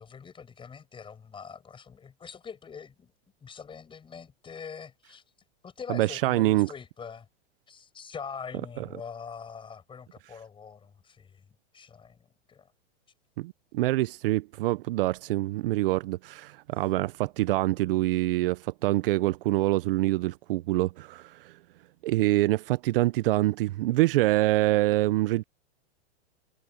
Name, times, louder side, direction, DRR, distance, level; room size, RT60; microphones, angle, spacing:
voice 1, 0.0-3.1 3.4-5.2 5.6-7.3 7.7-11.5 11.7-12.7, left 6 dB, 15° left, 5.6 m, -43 dB
voice 2, 5.9-6.7 8.8-8.9 13.4-21.5 22.0-25.4, right 17 dB, 55° right, 0.7 m, -25 dB
hypercardioid pair, 135°, 32 cm